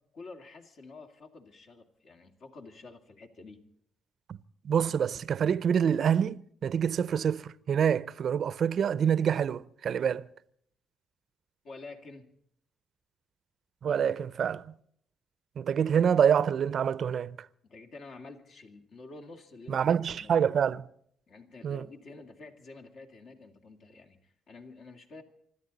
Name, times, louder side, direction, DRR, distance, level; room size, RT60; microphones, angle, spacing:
voice 1, 0.1-3.7 11.6-12.3 17.6-20.4 21.3-25.2, left 3 dB, 65° left, 2.4 m, -49 dB
voice 2, 4.6-10.3 13.8-14.7 15.6-17.4 19.7-20.8 21.6-21.9, right 8 dB, 60° right, 0.6 m, -26 dB
25.5 x 13.5 x 4.0 m
cardioid pair, 90°, 0 cm